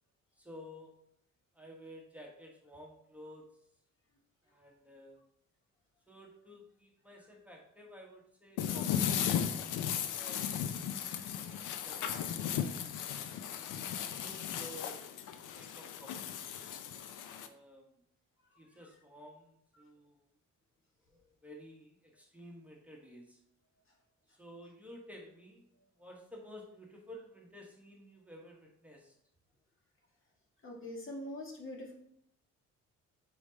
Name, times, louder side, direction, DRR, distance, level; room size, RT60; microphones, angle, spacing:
voice 1, 0.4-0.9 1.5-3.5 4.4-5.2 6.1-9.7 10.1-10.4 11.4-13.0 13.8-15.1 15.3-16.4 17.3-18.0 18.6-20.2 21.1-23.4 24.3-25.7 26.0-29.1, equal, 5° right, -2 dB, 1.4 m, -53 dB
sound 1, 8.6-17.5, left 9 dB, 90° left, 0.6 m, -36 dB
voice 2, 30.6-31.9, left 1 dB, 40° left, 0 dB, 1.7 m, -43 dB
5.1 x 5.0 x 4.1 m, 0.72 s
cardioid pair, 90°, 30 cm